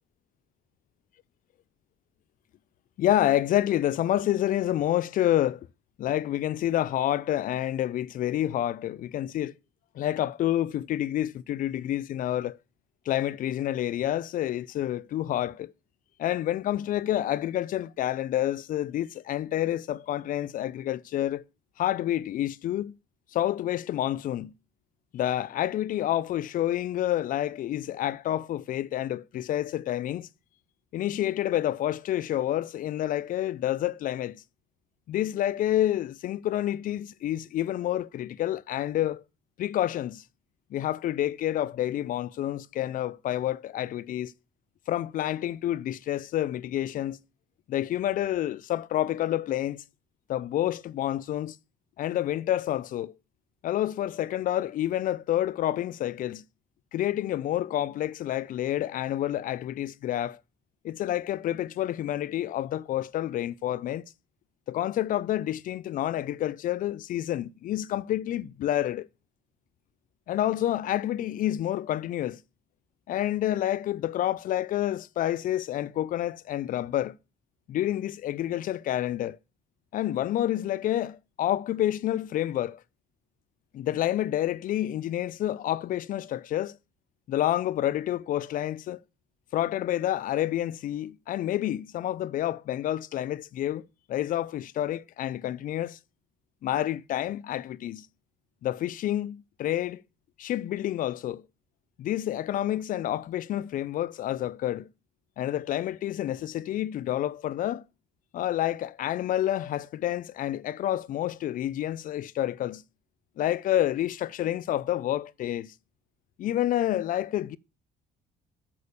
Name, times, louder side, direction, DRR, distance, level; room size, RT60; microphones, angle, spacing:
voice 1, 3.0-5.7 6.0-9.5 9.9-12.6 13.1-15.7 16.2-21.4 21.8-22.9 23.3-24.5 25.1-30.3 30.9-34.4 35.1-39.2 39.6-40.2 40.7-44.3 44.9-47.2 47.7-49.8 50.3-51.6 52.0-53.1 53.6-56.4 56.9-60.4 60.8-64.0 64.7-69.1 70.3-72.4 73.1-77.2 77.7-79.4 79.9-82.8 83.7-86.8 87.3-89.0 89.5-96.0 96.6-98.1 98.6-100.0 100.4-101.4 102.0-104.9 105.4-107.8 108.3-112.8 113.4-115.7 116.4-117.6, left 12 dB, 55° left, 0.4 m, -28 dB
8.5 x 6.9 x 6.6 m
cardioid pair, 110°, 17 cm